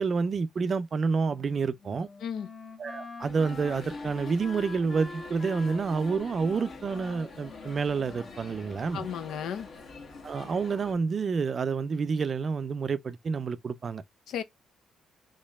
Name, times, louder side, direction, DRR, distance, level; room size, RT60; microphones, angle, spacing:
voice 1, 0.0-2.1 2.8-9.0 10.2-14.0, right 5 dB, 35° right, 0.4 m, -29 dB
Wind instrument woodwind instrument, 1.3-9.1, left 3 dB, 30° left, 0.9 m, -45 dB
sound 1, 3.2-10.9, left 3 dB, 45° left, 1.4 m, -46 dB
voice 2, 8.9-9.7 14.3-14.4, left 8 dB, 70° left, 0.8 m, -34 dB
4.3 x 3.0 x 3.5 m
cardioid pair, 165°, 0 cm